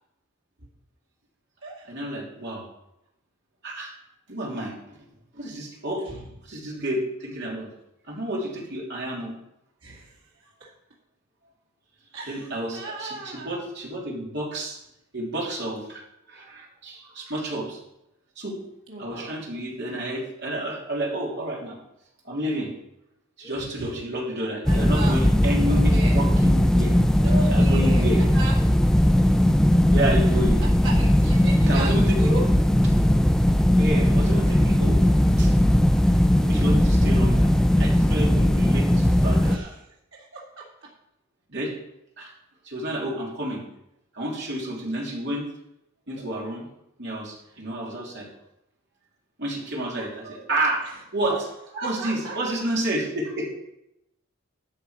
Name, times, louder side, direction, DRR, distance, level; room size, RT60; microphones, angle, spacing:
voice 1, 1.9-2.7 3.6-3.9 4.3-5.0 5.3-6.0 6.5-7.7 8.1-9.3 12.3-14.8 15.1-16.0 16.3-17.8 18.4-18.6 19.0-21.8 22.2-22.7 23.4-27.2 27.5-28.2 29.9-30.6 31.6-32.2 33.8-35.0 35.4-35.5 36.4-37.5 37.8-39.7 41.5-41.7 42.2-42.3 42.6-43.6 44.1-45.5 46.1-46.7 47.0-48.3 49.4-51.4 51.8-53.5, right 1 dB, 55° right, -3 dB, 3.2 m, -30 dB
voice 2, 9.8-10.7 12.1-13.5 18.9-19.3 23.4-24.0 24.7-25.3 25.7-26.2 27.2-28.6 29.2-29.3 30.2-32.5 39.4-39.7 40.1-40.9 46.1-46.2 49.9-50.5 50.8-50.9 51.3-51.4 51.7-52.4, right 2 dB, 85° right, -5 dB, 2.4 m, -36 dB
sound 1, 24.7-39.6, equal, 5° left, 0.3 m, -19 dB
12.5 x 7.2 x 5.1 m, 0.84 s
head